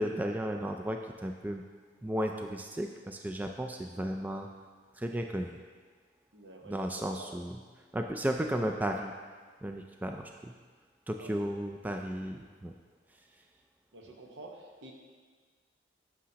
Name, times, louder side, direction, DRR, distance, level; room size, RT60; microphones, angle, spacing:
voice 1, 0.0-1.6 2.0-4.5 4.9-5.6 6.7-7.6 7.9-9.1 9.6-10.5 11.1-12.7, equal, 10° right, 3 dB, 0.3 m, -34 dB
voice 2, 6.3-7.3 11.2-11.3 11.7-12.1 13.9-14.9, right 2 dB, 70° right, 0 dB, 1.1 m, -50 dB
9.7 x 6.3 x 2.8 m, 1.5 s
head